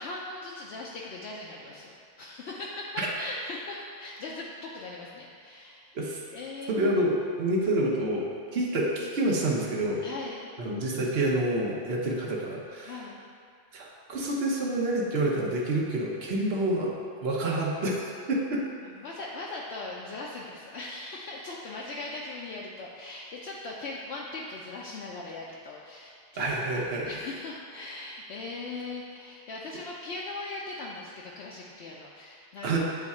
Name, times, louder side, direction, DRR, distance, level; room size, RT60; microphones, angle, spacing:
voice 1, 0.0-6.8 10.0-10.5 12.8-13.2 18.8-32.8, left 2 dB, 70° left, -4 dB, 0.9 m, -40 dB
voice 2, 6.7-8.3 8.5-10.0 10.6-12.9 13.7-16.9 17.2-18.6 26.3-27.1 32.6-32.8, right 1 dB, 60° right, -3 dB, 1.2 m, -28 dB
8.9 x 3.6 x 4.2 m, 2.3 s
omnidirectional pair, 1.2 m